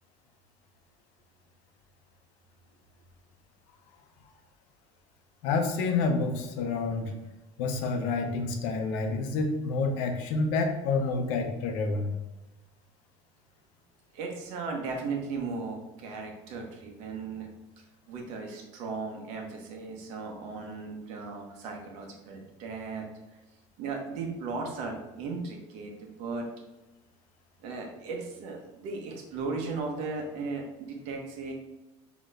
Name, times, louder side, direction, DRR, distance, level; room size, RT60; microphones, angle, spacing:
voice 1, 5.4-7.1 7.6-12.1, left 3 dB, 80° left, 4 dB, 0.7 m, -28 dB
voice 2, 14.1-17.5 18.1-23.0 23.8-26.4 27.6-31.5, right 4 dB, 60° right, 1 dB, 1.0 m, -36 dB
6.3 x 3.0 x 2.5 m, 1.0 s
cardioid pair, 180°, 13 cm